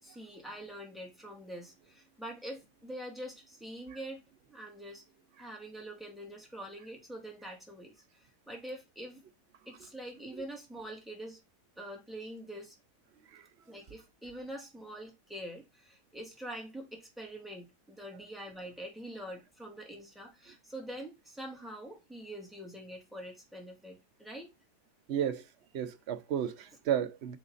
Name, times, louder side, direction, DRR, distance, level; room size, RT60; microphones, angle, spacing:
voice 1, 0.0-5.0 5.4-9.2 9.7-11.4 11.8-12.7 13.7-24.5, right 1 dB, ahead, 2.5 m, -45 dB
voice 2, 25.1-25.5 25.7-27.4, right 9 dB, 55° right, 0.9 m, -33 dB
8.8 x 3.9 x 4.0 m
omnidirectional pair, 1.7 m